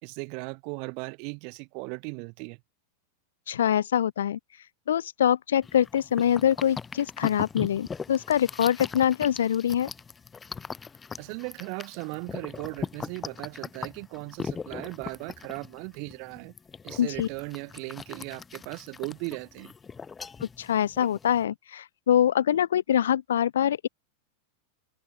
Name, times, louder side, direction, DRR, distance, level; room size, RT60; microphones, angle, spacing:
voice 1, 0.0-2.6 11.2-16.5 16.8-19.7, right 38 dB, 45° right, 1.5 m, -37 dB
voice 2, 3.5-4.4 4.9-9.9 17.0-17.3 20.4-23.9, left 10 dB, 65° left, 0.7 m, -24 dB
sound 1, 5.6-21.4, left 5 dB, 15° left, 0.6 m, -40 dB
figure-of-eight pair, 90°, 0 cm